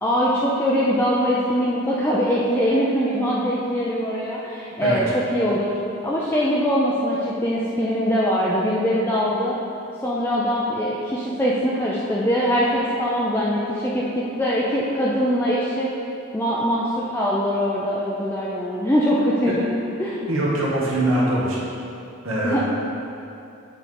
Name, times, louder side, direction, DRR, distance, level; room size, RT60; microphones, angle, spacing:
voice 1, 0.0-5.7 6.0-9.6 10.0-15.9 16.3-19.7 20.0-20.2 22.4-22.6, equal, 10° left, -6 dB, 0.5 m, -22 dB
voice 2, 20.1-21.6 22.2-22.6, right 1 dB, 75° right, -5 dB, 1.6 m, -23 dB
8.5 x 3.9 x 5.1 m, 2.8 s
head